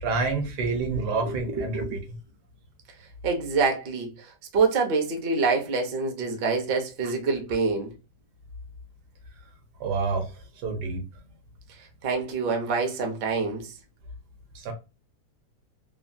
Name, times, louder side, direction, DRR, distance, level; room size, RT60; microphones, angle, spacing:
voice 1, 0.0-1.8 2.1-2.2 9.8-10.3 10.6-11.0 14.5-14.7, right 4 dB, 80° right, 1.3 m, -28 dB
voice 2, 0.9-2.0 3.2-7.9 12.0-13.7, right 4 dB, 55° right, 0.6 m, -26 dB
3.1 x 2.1 x 2.5 m
omnidirectional pair, 1.8 m